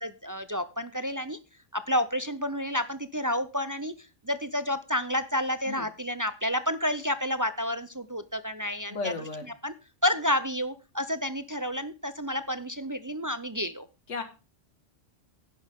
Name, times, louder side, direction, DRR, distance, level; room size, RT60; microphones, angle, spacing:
voice 1, 0.0-1.4 1.7-3.9 4.2-9.1 9.6-9.7 10.0-13.9, left 1 dB, 35° right, 12 dB, 0.3 m, -30 dB
voice 2, 8.9-9.5 14.1-14.2, left 4 dB, 75° left, 8 dB, 2.1 m, -34 dB
11.0 x 10.5 x 3.6 m, 0.31 s
omnidirectional pair, 1.3 m